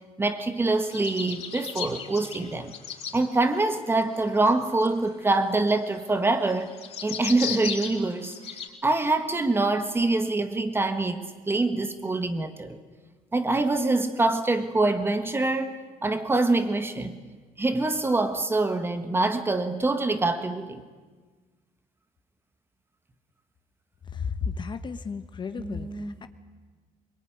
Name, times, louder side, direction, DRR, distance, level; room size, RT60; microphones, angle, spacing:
voice 1, 0.2-2.7 3.1-6.7 7.0-11.2 11.5-12.8 13.3-17.2 17.6-20.8 25.6-26.1, right 2 dB, 15° right, 1.6 m, -25 dB
sound 1, 0.8-3.2 3.9-8.7, left 8 dB, 50° left, 4.8 m, -36 dB
voice 2, 24.1-26.3, left 5 dB, 35° left, 1.1 m, -33 dB
22.5 x 22.5 x 9.8 m
cardioid pair, 135°, 13 cm